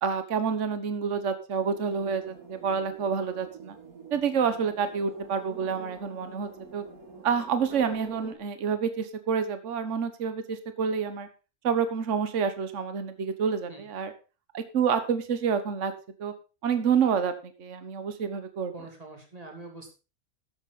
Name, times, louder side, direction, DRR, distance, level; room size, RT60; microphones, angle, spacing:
voice 1, 0.0-3.8 4.1-6.8 7.2-11.3 11.6-14.1 14.5-15.9 16.2-16.3 16.6-18.7, right 6 dB, 55° right, 10 dB, 1.5 m, -28 dB
sound 1, 1.6-8.4, right 3 dB, 90° right, 2.6 m, -47 dB
voice 2, 18.7-19.9, right 2 dB, 25° right, 2 dB, 3.1 m, -44 dB
13.5 x 8.8 x 4.1 m, 0.32 s
omnidirectional pair, 1.5 m